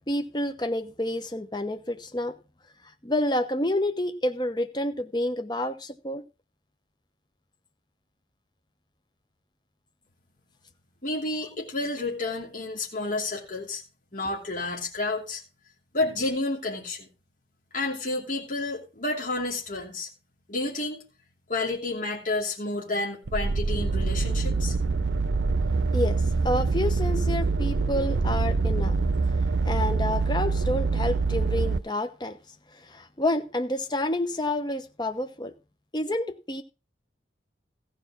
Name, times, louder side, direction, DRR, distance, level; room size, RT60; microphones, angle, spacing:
voice 1, 0.0-2.4 3.0-6.2 25.9-29.0 29.6-32.4 32.7-35.5 35.9-36.6, left 1 dB, 25° left, 0.9 m, -29 dB
voice 2, 11.0-13.8 14.1-15.4 15.9-17.1 17.7-20.1 20.5-21.0 21.5-24.7, left 2 dB, 45° left, 2.8 m, -30 dB
sound 1, 23.3-31.8, right 3 dB, 70° right, 0.6 m, -25 dB
15.0 x 5.2 x 6.0 m
head